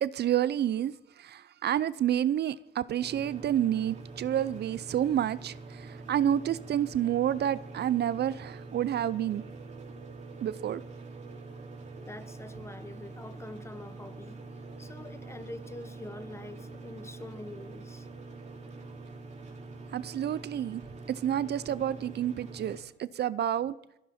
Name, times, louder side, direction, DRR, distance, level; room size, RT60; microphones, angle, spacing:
voice 1, 0.0-9.4 10.4-10.8 19.9-20.8 21.1-23.7, right 10 dB, 55° right, 0.5 m, -29 dB
sound 1, 3.0-22.8, right 3 dB, 35° right, 3.7 m, -45 dB
voice 2, 12.0-14.4 14.8-18.1, left 2 dB, 15° left, 1.0 m, -45 dB
21.0 x 15.5 x 4.3 m
cardioid pair, 90°, 20 cm